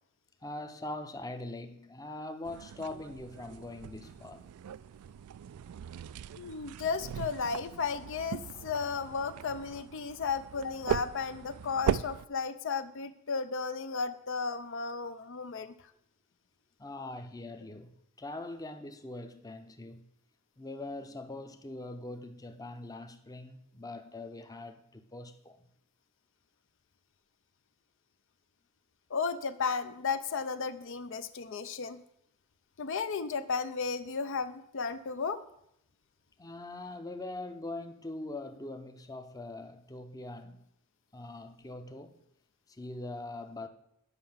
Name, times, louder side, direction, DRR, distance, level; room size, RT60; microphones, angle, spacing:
voice 1, 0.4-4.4 16.8-20.1 20.6-25.6 36.4-40.6 41.1-42.2 42.7-43.7, left 2 dB, 15° left, 0.7 m, -42 dB
sound 1, 2.4-12.3, right 8 dB, 80° right, 0.3 m, -38 dB
voice 2, 6.4-15.7 29.1-32.0 32.8-35.4, left 5 dB, 60° left, 0.5 m, -34 dB
9.7 x 5.7 x 7.2 m
head